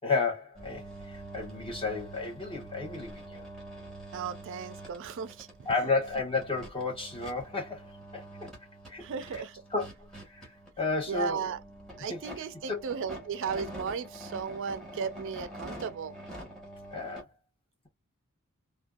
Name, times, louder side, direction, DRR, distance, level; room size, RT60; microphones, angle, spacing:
voice 1, 0.0-3.5 5.6-7.9 8.1-8.5 8.9-9.1 9.3-9.4 9.7-10.5 10.8-11.5 12.1-12.8 16.9-17.3, left 4 dB, 25° left, 1.0 m, -32 dB
sound 1, 0.5-17.2, right 1 dB, ahead, 1.2 m, -46 dB
voice 2, 4.1-5.5 9.0-9.5 11.1-11.6 12.0-16.2, right 6 dB, 60° right, 0.4 m, -35 dB
2.5 x 2.2 x 2.3 m
head